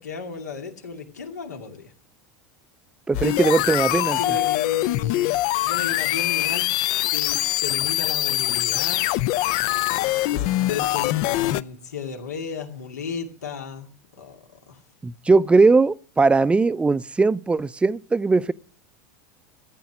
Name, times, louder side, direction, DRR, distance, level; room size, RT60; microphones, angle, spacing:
voice 1, 0.0-1.9 4.1-6.7 7.1-9.1 10.3-13.9 14.2-14.4 14.7-14.8, left 5 dB, 90° left, 2.5 m, -34 dB
sound 1, 3.1-11.6, left 17 dB, 60° left, 0.6 m, -23 dB
voice 2, 3.1-4.2 15.0-18.5, right 3 dB, 15° right, 0.6 m, -19 dB
13.5 x 9.3 x 6.1 m
hypercardioid pair, 90°, 9 cm